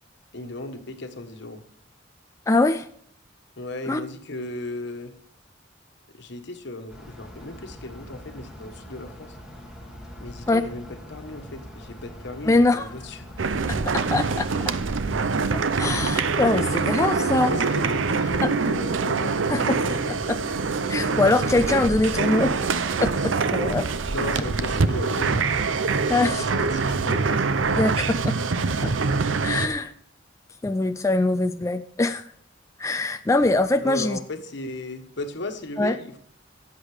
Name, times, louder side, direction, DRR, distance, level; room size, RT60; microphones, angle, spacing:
voice 1, 0.3-1.6 3.6-5.1 6.1-9.4 10.2-13.5 17.3-20.1 24.1-27.4 33.8-36.2, left 2 dB, 65° left, 6 dB, 1.4 m, -36 dB
voice 2, 2.5-2.9 3.9-4.0 10.5-10.6 12.5-12.9 13.7-14.5 15.8-17.5 19.5-19.8 20.3-20.4 20.9-22.5 23.0-23.8 26.1-26.4 27.8-28.3 28.8-28.9 29.4-29.9 30.6-32.2 32.8-34.2 35.8-35.9, left 2 dB, 15° left, 8 dB, 0.4 m, -22 dB
sound 1, 6.9-26.3, equal, 5° right, 2.1 m, -43 dB
sound 2, 13.4-29.7, right 4 dB, 75° right, 0.6 m, -24 dB
13.0 x 8.2 x 4.9 m, 0.64 s
head